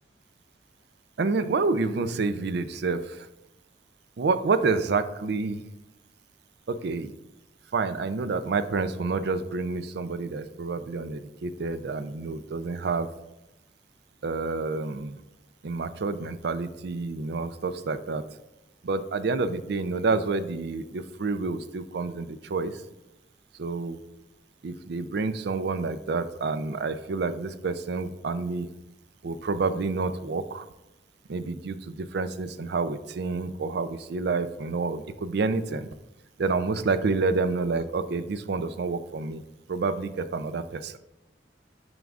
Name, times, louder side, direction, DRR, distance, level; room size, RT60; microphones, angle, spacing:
voice 1, 1.2-3.3 4.2-5.6 6.7-7.1 7.7-13.1 14.2-15.2 15.6-18.2 18.8-22.8 23.6-24.0 24.6-28.7 29.2-30.6 31.3-35.9 36.4-39.4 39.7-41.0, right 4 dB, 65° right, 12 dB, 0.4 m, -28 dB
9.2 x 5.2 x 2.4 m, 0.94 s
head